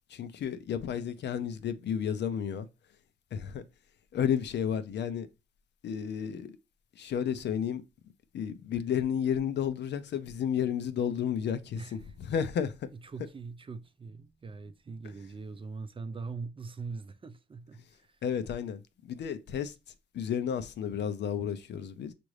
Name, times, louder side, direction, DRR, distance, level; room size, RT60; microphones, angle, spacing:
voice 1, 0.1-2.7 3.3-3.6 4.1-5.3 5.8-6.6 7.0-7.8 8.3-12.9 13.2-13.3 15.2-15.3 18.2-19.7 20.1-22.1, left 8 dB, 60° left, 0.6 m, -32 dB
voice 2, 11.8-12.1 13.0-18.2, right 4 dB, 25° right, 0.5 m, -42 dB
5.9 x 2.5 x 3.2 m
cardioid pair, 90°, 20 cm